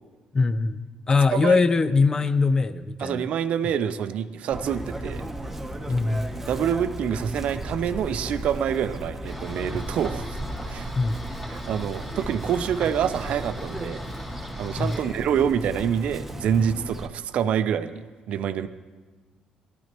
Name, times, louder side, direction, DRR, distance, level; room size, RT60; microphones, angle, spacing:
voice 1, 0.3-3.2 5.9-6.3 10.9-11.2 14.8-14.9, left 4 dB, 30° left, 13 dB, 0.5 m, -22 dB
voice 2, 1.3-1.6 3.0-5.2 6.5-10.9 11.5-14.0 14.6-18.7, right 8 dB, 70° right, 11 dB, 0.5 m, -26 dB
Chirp tweet, 4.5-17.1, right 1 dB, 10° right, 1.0 m, -35 dB
sound 1, 9.2-15.0, equal, 15° left, 2.0 m, -40 dB
18.0 x 12.0 x 3.0 m, 1.3 s
cardioid pair, 90°, 2 cm